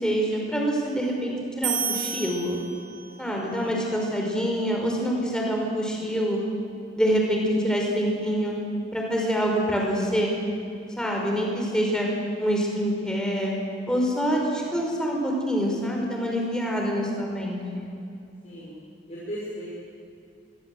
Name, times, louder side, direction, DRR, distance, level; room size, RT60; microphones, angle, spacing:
voice 1, 0.0-2.6 3.2-6.4 7.0-8.5 8.9-10.3 11.0-12.1 12.4-13.6 13.9-17.9, equal, 5° left, -1 dB, 5.3 m, -26 dB
sound 1, 1.6-3.3, right 7 dB, 40° right, 6.4 m, -31 dB
voice 2, 3.3-4.4 18.4-18.8 19.1-19.7, equal, 35° left, -7 dB, 5.8 m, -39 dB
25.5 x 22.5 x 7.9 m, 2.7 s
head